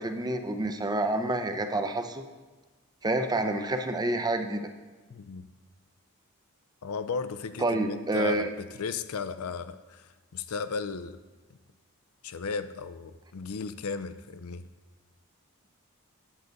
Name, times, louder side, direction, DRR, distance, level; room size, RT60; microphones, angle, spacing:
voice 1, 0.0-2.2 3.0-4.6 7.6-8.5, right 2 dB, 20° right, 7 dB, 0.6 m, -28 dB
voice 2, 5.1-5.5 6.8-8.5 8.8-11.2 12.2-14.7, left 5 dB, 75° left, 11 dB, 0.5 m, -35 dB
9.0 x 7.8 x 4.0 m, 1.3 s
head